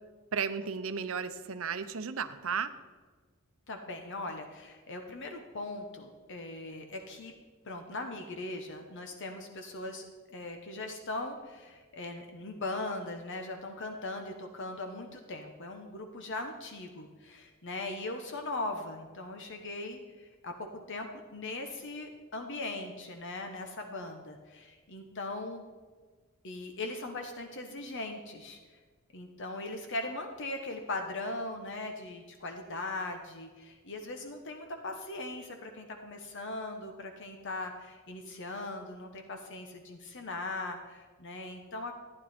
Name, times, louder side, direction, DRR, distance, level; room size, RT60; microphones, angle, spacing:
voice 1, 0.3-2.7, right 6 dB, 65° right, 10 dB, 0.7 m, -34 dB
voice 2, 3.7-7.3 7.6-25.6 26.4-28.6 29.1-42.0, left 2 dB, 55° left, 4 dB, 1.0 m, -39 dB
14.5 x 9.8 x 4.3 m, 1.4 s
head